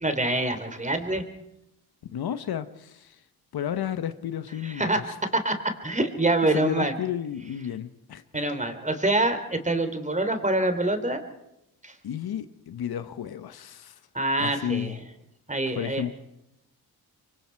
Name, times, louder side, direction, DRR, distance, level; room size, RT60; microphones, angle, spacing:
voice 1, 0.0-1.2 4.6-5.0 5.4-5.6 5.8-6.9 8.3-11.2 11.8-11.9 14.1-14.9 15.5-16.0, right 2 dB, 20° right, 8 dB, 3.4 m, -25 dB
voice 2, 2.1-3.2 3.5-5.1 6.4-8.4 12.0-14.0 14.4-15.0 15.8-16.2, left 9 dB, 70° left, 12 dB, 1.2 m, -32 dB
26.5 x 24.0 x 4.7 m, 0.85 s
cardioid pair, 70°, 39 cm